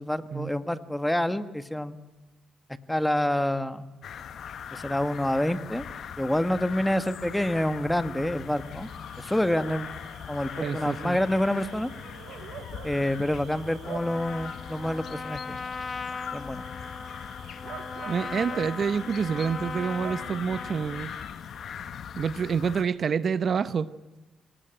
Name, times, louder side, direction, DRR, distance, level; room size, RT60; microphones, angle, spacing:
voice 1, 0.0-1.9 2.9-3.9 4.7-5.8 6.2-8.9 9.2-9.9 10.3-11.9 12.8-15.6 16.3-16.6, left 1 dB, 5° left, 12 dB, 1.6 m, -27 dB
sound 1, 4.0-22.8, left 8 dB, 60° left, 1.1 m, -41 dB
Bark / Cricket, 8.4-21.6, right 9 dB, 85° right, 1.9 m, -48 dB
voice 2, 10.6-11.2 18.1-21.1 22.2-23.9, right 6 dB, 50° right, 15 dB, 0.9 m, -27 dB
Trumpet, 13.9-21.0, left 4 dB, 40° left, 1.5 m, -38 dB
27.5 x 19.0 x 9.0 m, 1.1 s
cardioid pair, 90°, 0 cm